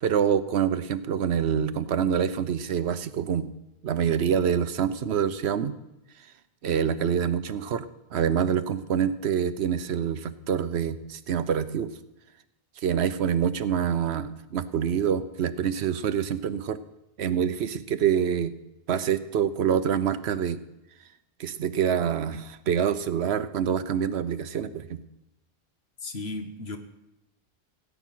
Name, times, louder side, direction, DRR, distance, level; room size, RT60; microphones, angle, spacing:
voice 1, 0.0-3.5 3.8-5.7 6.6-7.9 8.1-11.9 12.8-16.8 17.2-18.5 18.9-20.6 21.4-25.0, right 8 dB, 85° right, 13 dB, 1.0 m, -26 dB
voice 2, 26.0-26.8, left 2 dB, 75° left, 7 dB, 1.6 m, -35 dB
17.0 x 6.1 x 9.3 m, 0.92 s
omnidirectional pair, 1.1 m